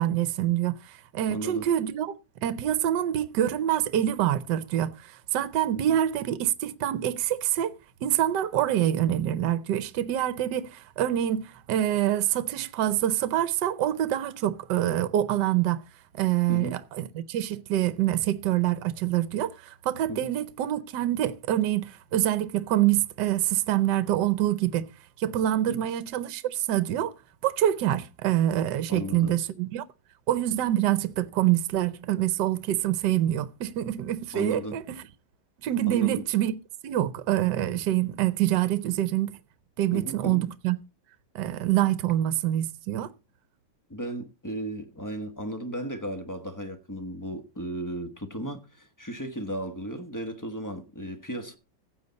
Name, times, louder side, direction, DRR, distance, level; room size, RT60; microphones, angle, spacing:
voice 1, 0.0-2.1 2.4-15.9 16.2-24.9 25.2-27.1 27.4-29.8 30.3-35.0 35.6-36.6 36.8-39.3 39.8-40.8 41.3-43.1, right 12 dB, 70° right, 1.3 m, -26 dB
voice 2, 1.3-1.7 5.7-6.0 16.5-16.8 20.1-20.3 25.7-25.8 28.9-29.4 34.3-34.8 35.8-36.3 39.9-40.5 43.9-51.6, right 1 dB, 15° left, 0.8 m, -35 dB
15.0 x 8.2 x 4.0 m
omnidirectional pair, 2.1 m